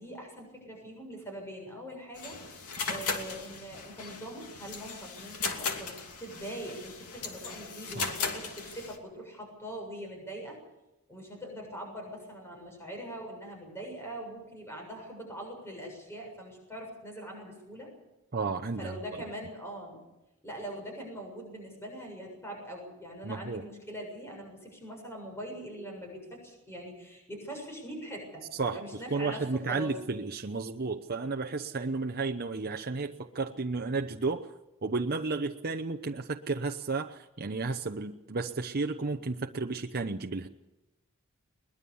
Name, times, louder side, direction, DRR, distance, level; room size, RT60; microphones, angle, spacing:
voice 1, 0.0-10.6 11.1-17.9 18.8-20.0 20.4-28.4 28.7-29.9, right 1 dB, 10° left, 1 dB, 7.1 m, -42 dB
sound 1, 2.2-9.0, left 5 dB, 85° left, 2.7 m, -37 dB
voice 2, 18.3-18.9 23.2-23.6 28.6-34.5 34.8-40.5, right 3 dB, 45° right, 5 dB, 0.8 m, -33 dB
22.0 x 20.5 x 7.1 m, 0.96 s
head